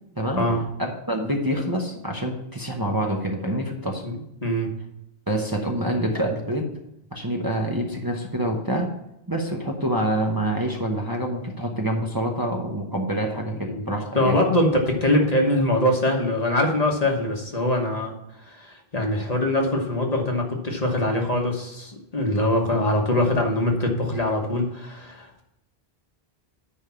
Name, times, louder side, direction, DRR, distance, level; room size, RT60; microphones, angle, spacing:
voice 1, 0.8-4.0 5.3-6.7 7.1-8.9 9.3-14.4, right 1 dB, 20° right, 0 dB, 1.0 m, -26 dB
voice 2, 4.0-4.7 13.7-18.1 18.4-25.4, left 1 dB, 40° left, 1 dB, 1.4 m, -23 dB
9.9 x 3.5 x 6.9 m, 0.85 s
omnidirectional pair, 1.1 m